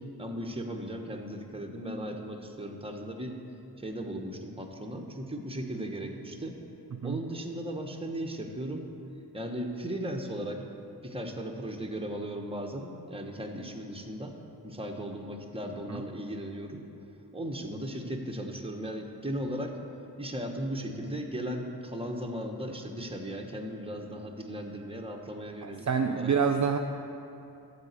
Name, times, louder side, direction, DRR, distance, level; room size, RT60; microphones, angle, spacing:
voice 1, 0.0-3.4 3.8-6.6 7.0-8.9 9.3-10.6 11.0-14.4 14.6-16.8 17.3-19.8 20.2-26.3, equal, 15° right, 2 dB, 1.0 m, -37 dB
voice 2, 25.6-26.8, right 6 dB, 45° right, 5 dB, 0.5 m, -27 dB
12.0 x 4.1 x 8.1 m, 2.9 s
wide cardioid pair, 70°, 40 cm